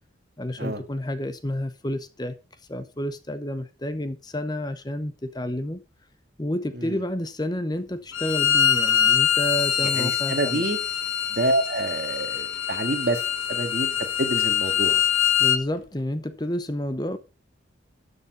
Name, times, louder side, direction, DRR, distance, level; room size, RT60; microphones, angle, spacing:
voice 1, 0.4-2.4 2.7-5.8 6.4-10.7 15.4-17.2, left 1 dB, 20° left, 0.8 m, -30 dB
Bowed string instrument, 8.1-15.6, left 9 dB, 80° left, 1.3 m, -24 dB
voice 2, 9.9-10.8 11.3-13.2 13.5-15.0, right 1 dB, 50° right, 2.0 m, -27 dB
12.5 x 6.9 x 5.3 m
head